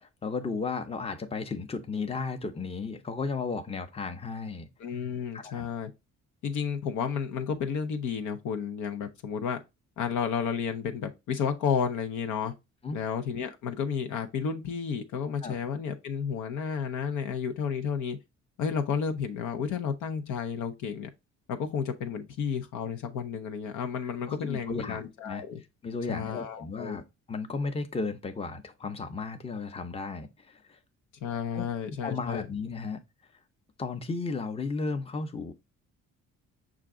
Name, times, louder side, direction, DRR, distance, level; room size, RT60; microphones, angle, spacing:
voice 1, 0.0-4.7 5.3-5.7 12.8-13.0 15.4-15.6 24.3-25.4 25.8-27.0 27.3-30.8 31.5-31.7 32.0-33.0 33.8-35.5, left 4 dB, 20° left, 0.7 m, -34 dB
voice 2, 4.8-5.9 6.4-9.6 10.0-12.5 12.9-18.2 18.6-21.1 21.5-25.6 26.1-27.0 31.2-32.5, left 7 dB, 75° left, 0.8 m, -32 dB
5.7 x 2.5 x 3.6 m
cardioid pair, 90°, 30 cm